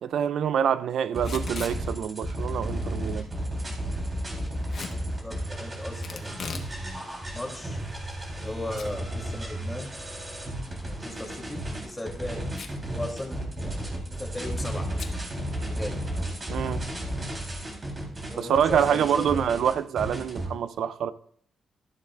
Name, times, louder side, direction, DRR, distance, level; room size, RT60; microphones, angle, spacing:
voice 1, 0.0-3.3 16.5-16.8 18.4-21.1, right 8 dB, 80° right, 0.5 m, -26 dB
Packing tape duct tape / Tearing, 1.1-1.8 4.7-5.0 6.0-6.7 7.1-7.2 7.9-8.5 8.8-8.9 9.3-9.4 11.3-11.6 12.5-12.9 13.2-13.3 13.5-13.9 15.0-15.2, left 5 dB, 65° left, 1.3 m, -38 dB
sound 1, 1.1-20.5, right 1 dB, 30° right, 3.8 m, -33 dB
voice 2, 5.1-7.8 8.4-9.9 10.8-12.4 12.9-14.8 15.6-15.9 18.3-19.4, left 1 dB, 10° left, 3.2 m, -37 dB
13.5 x 11.5 x 2.5 m
cardioid pair, 90°, 0 cm